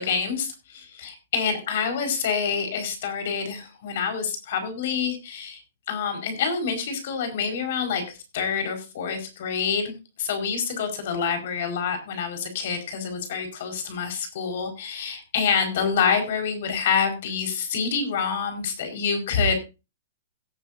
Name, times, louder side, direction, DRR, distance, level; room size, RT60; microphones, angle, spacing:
voice 1, 0.0-5.6 5.9-19.6, left 6 dB, 50° left, 6 dB, 4.9 m, -27 dB
17.5 x 10.5 x 2.7 m, 0.28 s
hypercardioid pair, 175°, 0 cm